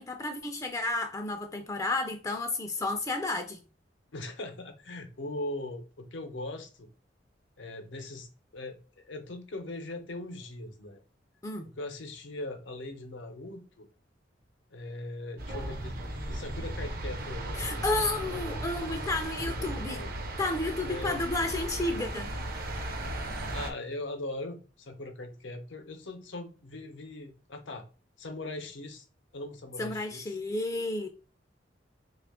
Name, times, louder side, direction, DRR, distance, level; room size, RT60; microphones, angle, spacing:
voice 1, 0.0-3.6 11.4-11.7 17.5-20.0 20.4-22.3 29.8-31.1, left 2 dB, 20° left, 0.4 m, -32 dB
voice 2, 4.1-6.9 7.6-11.0 11.6-13.9 14.7-16.0 16.3-18.6 19.5-20.1 20.9-21.2 23.1-27.9 28.2-29.1 29.3-30.4, left 2 dB, 80° left, 0.7 m, -40 dB
sound 1, 15.4-23.7, right 1 dB, 50° right, 0.6 m, -36 dB
3.2 x 2.4 x 3.5 m
head